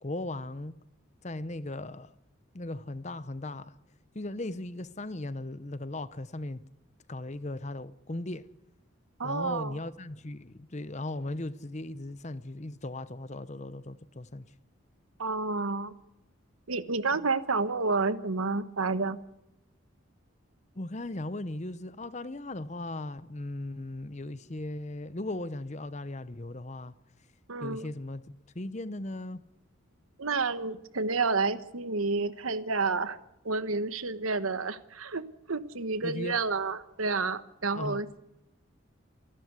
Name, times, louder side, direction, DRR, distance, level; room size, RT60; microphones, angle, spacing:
voice 1, 0.0-0.7 1.2-2.1 2.5-3.7 4.1-6.6 7.1-8.4 9.2-14.5 17.1-17.3 20.8-26.9 27.6-29.4 36.0-36.4 37.8-38.0, left 2 dB, 35° left, 0.8 m, -37 dB
voice 2, 9.2-9.8 15.2-15.9 16.7-19.2 27.5-27.9 30.2-33.2 33.4-35.2 35.5-38.2, right 4 dB, 90° right, 1.3 m, -30 dB
27.5 x 12.5 x 8.2 m
head